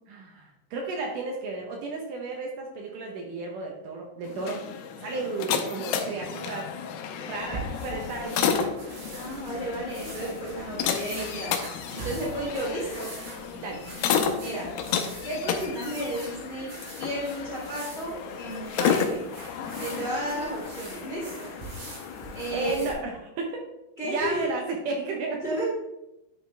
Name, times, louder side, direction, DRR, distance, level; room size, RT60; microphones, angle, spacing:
voice 1, 0.1-4.6 5.0-6.7 7.2-8.8 13.5-13.8 22.5-23.7 24.0-25.4, right 3 dB, 80° right, 1 dB, 1.8 m, -33 dB
sound 1, 4.2-22.7, left 7 dB, 80° left, 2.4 m, -32 dB
sound 2, 7.4-22.9, right 3 dB, 60° right, 4.7 m, -43 dB
voice 2, 9.1-13.1 14.4-14.7 15.2-19.3 19.8-21.5 22.3-22.9 24.0-24.5 25.4-25.7, right 1 dB, 35° left, -6 dB, 1.0 m, -33 dB
10.5 x 4.9 x 3.3 m, 0.90 s
omnidirectional pair, 4.7 m